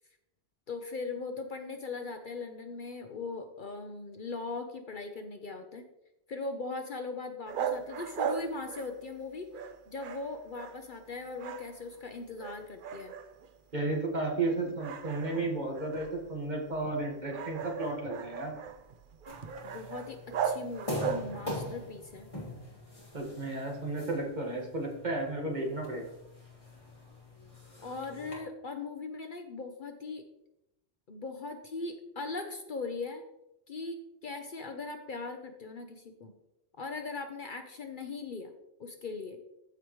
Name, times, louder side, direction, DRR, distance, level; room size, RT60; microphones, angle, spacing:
voice 1, 0.7-5.8 6.3-13.1 19.6-22.3 27.8-30.2 31.1-33.2 33.7-34.0 34.2-36.3 36.8-38.5 38.8-39.4, left 3 dB, 50° left, 5 dB, 0.8 m, -39 dB
sound 1, 7.5-9.2 9.5-11.1 11.3-12.1 12.4-13.6 14.0-14.2 14.8-21.6, right 7 dB, 55° right, 0.6 m, -38 dB
voice 2, 13.7-18.5 23.1-26.1, right 2 dB, 40° right, 0 dB, 1.7 m, -33 dB
sound 2, 19.3-28.3, left 1 dB, 30° left, 3.3 m, -43 dB
14.5 x 4.8 x 3.1 m, 0.85 s
omnidirectional pair, 1.2 m